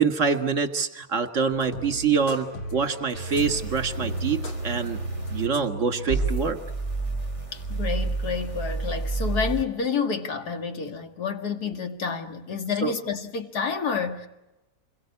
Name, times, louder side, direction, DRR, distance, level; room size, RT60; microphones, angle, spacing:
voice 1, 0.0-4.4 4.6-5.0 5.3-6.6 12.8-12.9, right 6 dB, 40° right, 2.0 m, -25 dB
sound 1, 1.5-6.5, right 1 dB, 90° left, 3.6 m, -35 dB
sound 2, 3.1-5.5 6.1-9.6, right 3 dB, 15° left, 2.8 m, -30 dB
voice 2, 7.5-14.3, left 6 dB, 50° left, 2.3 m, -29 dB
28.0 x 22.0 x 8.5 m
omnidirectional pair, 2.3 m